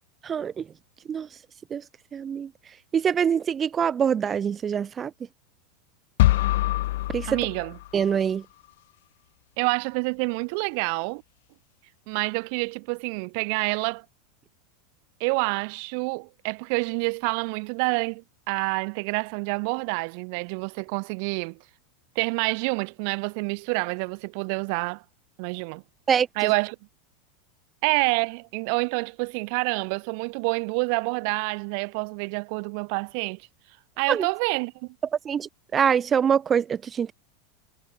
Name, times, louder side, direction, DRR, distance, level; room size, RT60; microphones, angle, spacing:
voice 1, 0.2-0.6 1.1-1.3 1.7-1.8 2.1-2.5 2.9-5.1 7.1-7.4 7.9-8.4 26.1-26.5 34.1-34.3 35.3-37.1, right 7 dB, 30° right, 0.3 m, -24 dB
sound 1, 6.2-8.2, left 17 dB, 70° left, 0.4 m, -24 dB
voice 2, 7.3-7.8 9.6-11.2 12.1-14.0 15.2-21.6 22.1-25.0 25.4-25.8 26.3-26.7 27.8-33.4 34.0-34.9, right 37 dB, 60° right, 1.6 m, -27 dB
hypercardioid pair, 100°, 0 cm